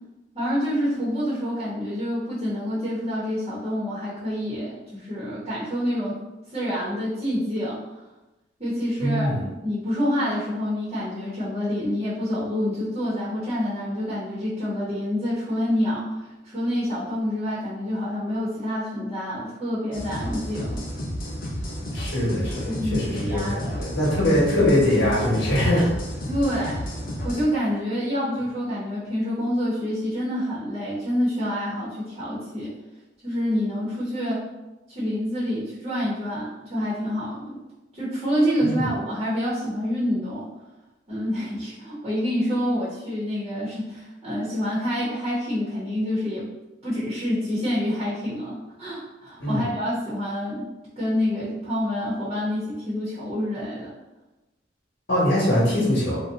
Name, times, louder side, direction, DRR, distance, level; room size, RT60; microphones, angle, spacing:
voice 1, 0.3-6.2 6.5-7.8 8.6-9.3 9.6-16.1 16.4-20.8 22.6-23.8 26.3-26.8 27.2-32.7 33.2-34.4 34.9-37.6 37.9-40.5 41.1-46.5 46.8-53.9, equal, 30° right, -9 dB, 0.9 m, -27 dB
voice 2, 9.0-9.4 21.9-25.9 38.6-38.9 49.4-49.7 55.1-56.2, left 1 dB, 70° left, -8 dB, 1.0 m, -22 dB
sound 1, 19.9-27.4, equal, 45° left, 0.5 m, -32 dB
2.7 x 2.2 x 3.5 m, 1.0 s
head